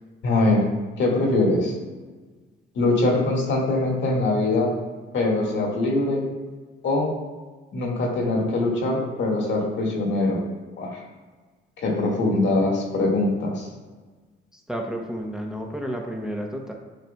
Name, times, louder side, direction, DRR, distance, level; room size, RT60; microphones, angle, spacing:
voice 1, 0.2-0.6 1.0-1.7 2.8-4.7 5.1-6.3 6.8-7.1 7.7-10.4 10.8-11.0 11.8-13.7, left 2 dB, 70° left, -2 dB, 1.8 m, -22 dB
voice 2, 14.5-16.7, equal, 5° right, 1 dB, 0.8 m, -31 dB
9.3 x 4.9 x 2.3 m, 1.4 s
cardioid pair, 90°, 20 cm